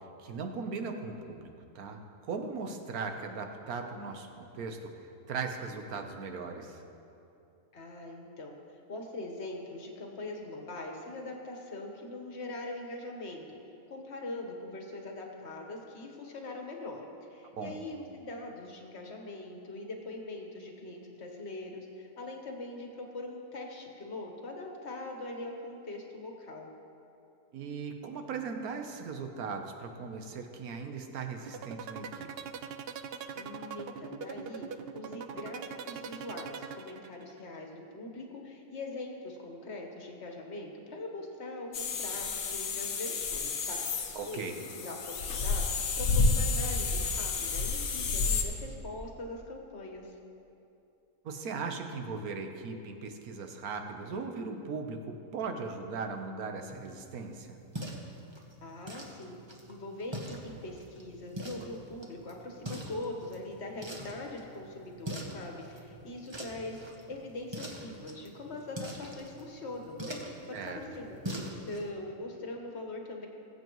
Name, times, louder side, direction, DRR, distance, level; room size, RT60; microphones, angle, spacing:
voice 1, 0.2-1.5 1.7-6.8 17.5-17.8 27.5-32.3 44.1-44.6 51.2-57.6 70.5-70.8, right 4 dB, 85° right, 5 dB, 1.4 m, -38 dB
voice 2, 7.7-8.5 8.9-13.5 13.9-26.7 33.3-50.1 58.6-59.4 59.7-70.2 70.5-73.3, left 2 dB, 50° left, 1 dB, 1.5 m, -42 dB
sound 1, 31.5-37.4, right 7 dB, 65° right, 0.6 m, -41 dB
sound 2, 41.7-48.4, left 4 dB, 75° left, 1.3 m, -30 dB
sound 3, 56.7-71.9, right 1 dB, 20° right, 1.0 m, -44 dB
20.5 x 8.1 x 3.1 m, 2.7 s
omnidirectional pair, 1.5 m